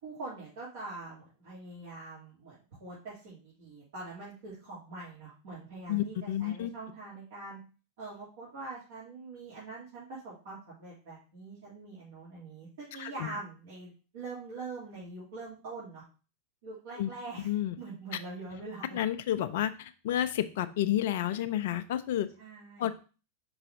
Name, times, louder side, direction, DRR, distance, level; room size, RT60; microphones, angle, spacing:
voice 1, 0.0-7.6 8.0-16.0 16.6-17.5 17.8-19.0 22.4-22.9, right 3 dB, 55° right, -9 dB, 2.8 m, -44 dB
voice 2, 5.9-6.7 13.0-13.3 17.0-17.1 17.4-17.7 18.9-22.3 22.8-22.9, left 12 dB, 55° left, 12 dB, 0.5 m, -30 dB
5.5 x 4.9 x 3.7 m, 0.35 s
figure-of-eight pair, 90°, 0 cm